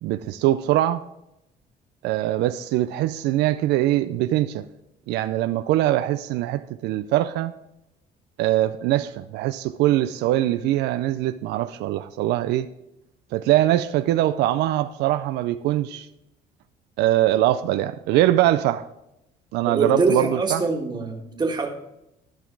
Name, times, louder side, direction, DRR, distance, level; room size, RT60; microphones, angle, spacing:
voice 1, 0.0-1.0 2.0-4.7 5.1-7.5 8.4-12.7 13.3-16.1 17.0-18.9 19.5-20.6, right 14 dB, 85° right, 0.4 m, -22 dB
voice 2, 19.6-21.7, right 3 dB, 25° right, 1.7 m, -24 dB
12.5 x 5.8 x 4.7 m
cardioid pair, 110°, 17 cm